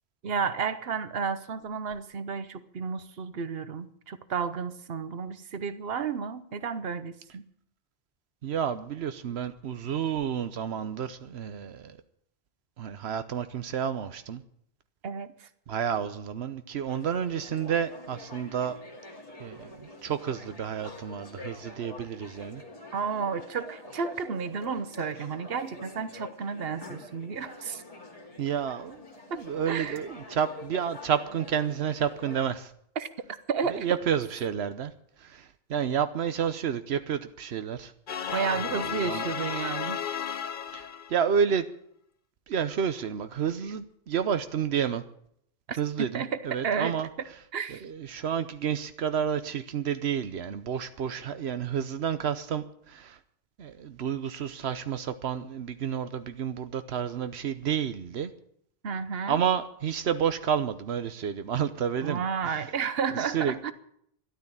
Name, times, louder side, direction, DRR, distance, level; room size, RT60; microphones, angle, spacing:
voice 1, 0.2-7.4 15.0-15.5 22.9-27.8 29.3-30.0 33.0-33.1 33.5-33.9 38.3-40.0 45.7-45.8 46.1-46.4 46.6-47.3 47.5-47.8 58.8-59.4 62.0-63.7, right 6 dB, 70° right, 13 dB, 1.2 m, -32 dB
voice 2, 8.4-12.0 12.8-14.4 15.7-18.8 19.4-22.6 28.4-29.0 29.4-32.7 33.7-34.9 35.2-37.9 38.8-39.3 40.7-41.7 42.5-45.0 45.8-47.1 47.7-53.2 53.6-58.3 59.3-62.7 63.2-63.7, right 8 dB, 85° right, 11 dB, 1.1 m, -30 dB
sound 1, 16.9-32.5, left 2 dB, 35° left, 2.6 m, -46 dB
sound 2, 38.1-41.3, left 8 dB, 55° left, 0.9 m, -33 dB
13.0 x 12.0 x 8.7 m, 0.69 s
omnidirectional pair, 1.1 m